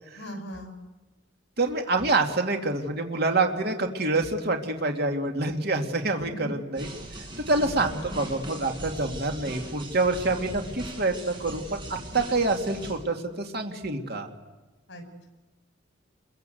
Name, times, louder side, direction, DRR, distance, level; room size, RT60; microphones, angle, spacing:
voice 1, 0.1-0.8 6.2-6.5 7.5-7.7 8.0-8.2 14.9-15.3, equal, 65° left, 6 dB, 6.2 m, -40 dB
voice 2, 1.6-6.9 7.5-14.3, right 2 dB, 55° right, 3 dB, 2.6 m, -26 dB
sound 1, 6.7-12.9, right 1 dB, 25° right, 7.3 m, -40 dB
29.0 x 23.0 x 8.0 m, 1.2 s
head